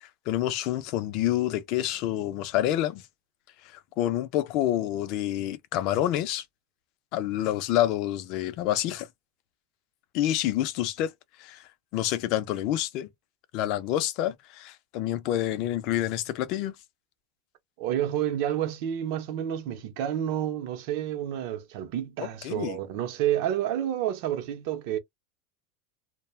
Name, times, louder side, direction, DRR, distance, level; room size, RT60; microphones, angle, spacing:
voice 1, 0.0-3.0 3.7-6.4 7.1-9.1 10.1-11.1 11.4-11.6 11.9-13.1 13.5-16.7 22.4-22.8, left 13 dB, 50° left, 0.4 m, -28 dB
voice 2, 17.8-25.0, right 11 dB, 60° right, 0.7 m, -29 dB
2.3 x 2.1 x 3.1 m
supercardioid pair, 150°, 0 cm